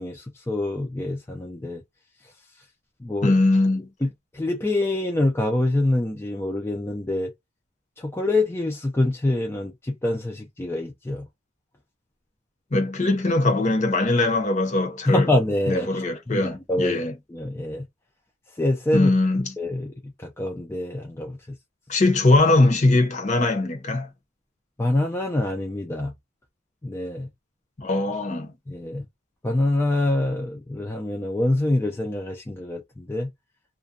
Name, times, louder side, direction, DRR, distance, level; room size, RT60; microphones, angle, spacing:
voice 1, 0.0-1.8 3.0-3.3 4.0-4.1 4.3-7.3 8.0-11.2 15.1-16.0 16.3-17.0 17.3-17.8 18.6-19.1 19.6-19.9 20.4-21.3 24.8-26.1 26.8-27.3 28.7-29.0 29.4-32.8 33.1-33.3, left 1 dB, 10° left, 0.3 m, -25 dB
voice 2, 3.2-3.9 12.7-15.3 15.7-17.2 18.9-19.5 21.9-24.1 27.8-28.5, left 2 dB, 35° left, 0.8 m, -21 dB
2.4 x 2.2 x 2.5 m
head